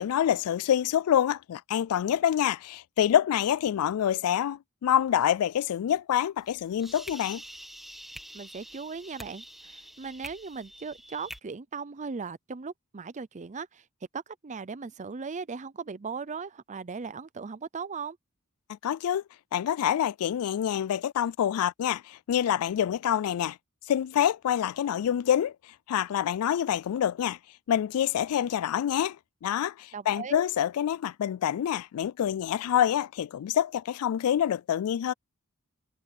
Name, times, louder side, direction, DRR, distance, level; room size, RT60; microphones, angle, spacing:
voice 1, 0.0-7.4 18.8-19.2 19.5-23.6 23.9-25.5 25.9-27.4 27.7-29.2 29.4-35.1, left 10 dB, 70° left, 0.3 m, -26 dB
sound 1, 6.4-11.4, equal, ahead, 1.9 m, -46 dB
voice 2, 8.3-13.8 14.1-18.2 29.9-30.4, right 5 dB, 35° right, 0.5 m, -38 dB
head